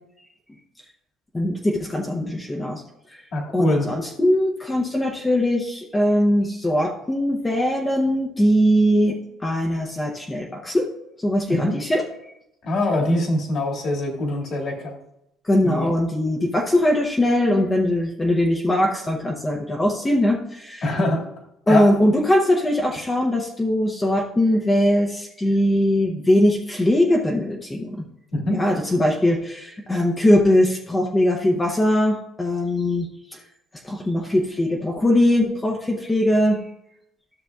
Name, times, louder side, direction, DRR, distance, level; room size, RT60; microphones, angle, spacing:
voice 1, 1.3-2.8 3.1-3.2 3.5-10.9 11.2-12.0 15.4-20.8 21.7-28.0 28.5-33.4 33.8-36.6, left 1 dB, 15° left, -1 dB, 0.7 m, -21 dB
voice 2, 3.3-3.9 11.5-11.7 12.6-15.0 15.6-15.9 20.8-21.2 21.7-21.9 28.3-28.6, left 1 dB, 50° left, -2 dB, 2.0 m, -23 dB
12.5 x 6.6 x 2.3 m, 0.84 s
cardioid pair, 135°, 0 cm